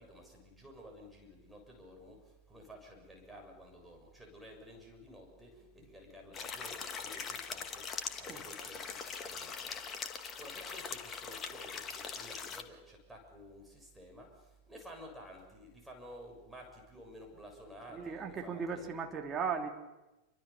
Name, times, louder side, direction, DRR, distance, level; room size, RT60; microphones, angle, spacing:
voice 1, 0.0-18.9, equal, 5° right, 1 dB, 7.0 m, -53 dB
sound 1, 6.3-12.6, left 6 dB, 25° left, 2.0 m, -42 dB
voice 2, 17.9-19.7, right 6 dB, 20° right, 2 dB, 2.8 m, -37 dB
29.0 x 24.0 x 6.9 m, 1.0 s
figure-of-eight pair, 90°, 0 cm